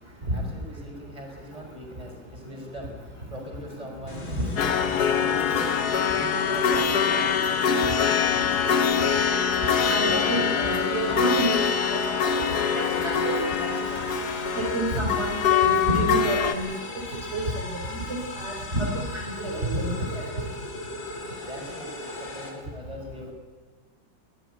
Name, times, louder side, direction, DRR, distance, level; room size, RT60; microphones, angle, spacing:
voice 1, 0.0-5.7 6.1-8.5 21.4-23.3, equal, 15° right, 1 dB, 5.5 m, -41 dB
sound 1, 4.1-22.5, left 1 dB, 80° left, 4.1 m, -38 dB
sound 2, 4.6-16.6, left 7 dB, 60° left, 1.4 m, -24 dB
sound 3, 8.1-14.4, equal, 60° right, 7.4 m, -43 dB
voice 2, 9.9-11.5 11.9-14.0 14.6-16.7 17.3-18.9 19.1-20.2, right 1 dB, 35° right, -3 dB, 3.9 m, -29 dB
22.5 x 14.0 x 9.9 m, 1.4 s
omnidirectional pair, 2.1 m